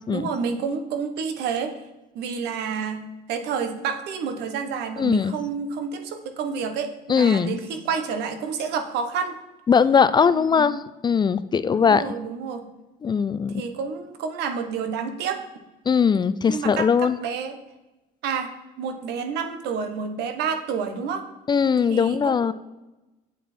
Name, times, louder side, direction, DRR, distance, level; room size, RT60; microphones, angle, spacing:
voice 1, 0.1-1.7 2.1-9.4 10.3-10.7 11.7-12.7 13.5-15.4 16.5-17.6 18.2-18.5 18.8-21.2 21.9-22.5, right 6 dB, 85° right, 7 dB, 1.0 m, -29 dB
voice 2, 5.0-5.3 7.1-7.6 9.7-12.0 13.0-13.6 15.9-17.2 21.5-22.5, left 6 dB, 25° left, 15 dB, 0.3 m, -20 dB
7.7 x 6.9 x 4.3 m, 1.0 s
cardioid pair, 110°, 17 cm